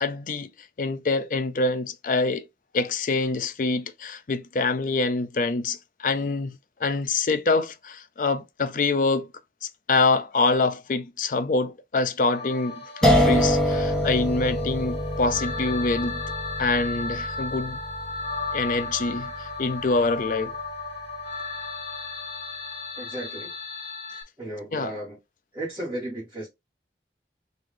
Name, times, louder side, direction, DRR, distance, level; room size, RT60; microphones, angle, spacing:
voice 1, 0.0-0.5 0.8-2.5 2.7-9.3 9.9-16.2 16.6-17.8 18.5-20.6 24.7-25.0, left 3 dB, 50° left, 0.4 m, -25 dB
sound 1, 12.2-24.2, left 3 dB, 75° left, 1.5 m, -35 dB
sound 2, 13.0-20.0, equal, 5° left, 0.7 m, -26 dB
voice 2, 23.0-23.5 24.4-25.2 25.5-26.5, right 1 dB, 15° right, 2.0 m, -34 dB
3.2 x 3.0 x 3.7 m
head